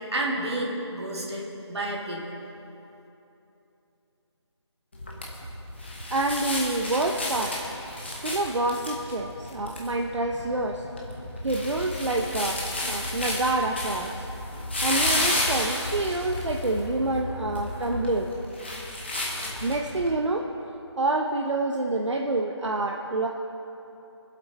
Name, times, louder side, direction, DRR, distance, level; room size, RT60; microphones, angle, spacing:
voice 1, 0.0-2.3, right 1 dB, 65° right, -2 dB, 2.3 m, -30 dB
sound 1, 4.9-20.1, left 1 dB, 25° left, 1.1 m, -32 dB
voice 2, 6.1-7.6 8.2-10.9 11.4-14.3 14.8-18.3 19.6-20.5 21.0-23.3, right 2 dB, 90° right, 1 dB, 0.9 m, -27 dB
22.5 x 7.9 x 4.1 m, 2.9 s
figure-of-eight pair, 180°, 15 cm